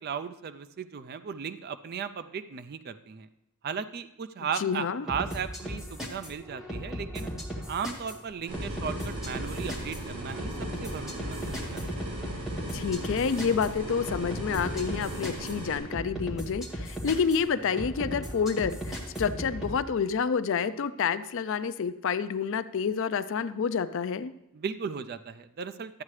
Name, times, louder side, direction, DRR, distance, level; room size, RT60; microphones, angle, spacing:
voice 1, 0.0-3.3 3.6-7.3 7.7-10.5 10.8-11.9 24.5-26.0, right 6 dB, 45° right, 12 dB, 0.4 m, -36 dB
voice 2, 4.6-5.1 12.7-24.3, left 6 dB, 60° left, 12 dB, 0.4 m, -29 dB
sound 1, 5.1-19.8, equal, ahead, 1.5 m, -37 dB
sound 2, 8.5-15.8, right 1 dB, 80° right, 3.3 m, -38 dB
12.5 x 8.4 x 3.2 m, 0.84 s
head